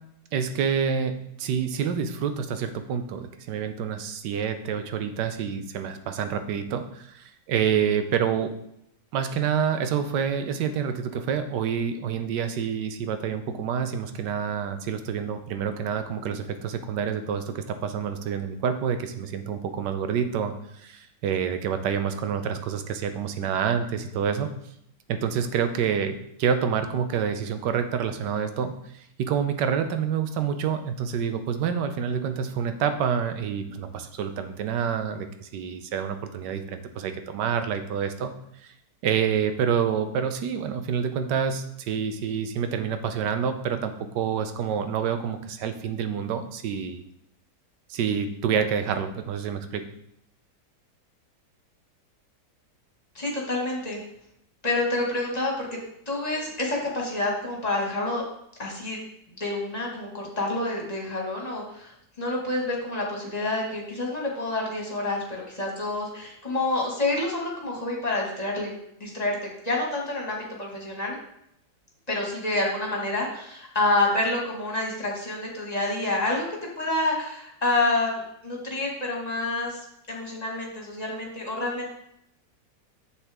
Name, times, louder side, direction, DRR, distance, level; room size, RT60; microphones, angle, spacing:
voice 1, 0.3-8.5 9.1-24.5 25.1-38.3 39.0-47.0 47.9-49.8, right 7 dB, 75° right, 8 dB, 1.3 m, -28 dB
voice 2, 53.2-54.0 54.6-55.7 56.1-58.2 58.6-59.0 59.4-61.9 62.2-68.7 69.0-69.4 69.6-71.2 72.1-76.5 76.8-79.8 80.1-81.9, left 2 dB, 25° left, -2 dB, 1.8 m, -28 dB
7.3 x 6.8 x 3.5 m, 0.76 s
omnidirectional pair, 1.9 m